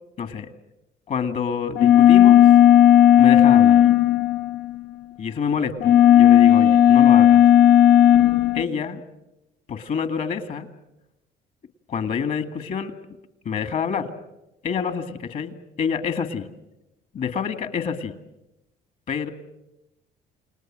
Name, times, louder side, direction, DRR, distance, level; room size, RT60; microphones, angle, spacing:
voice 1, 0.2-0.5 1.1-2.5 3.2-3.8 5.2-7.5 8.5-9.0 9.7-10.7 11.9-12.9 13.5-14.1 14.6-16.5 17.1-18.1 19.1-19.3, left 6 dB, 50° left, 9 dB, 2.1 m, -27 dB
sound 1, 1.8-4.8 5.8-8.6, left 11 dB, 70° left, 0.8 m, -13 dB
29.5 x 19.0 x 7.6 m, 0.91 s
cardioid pair, 110°, 17 cm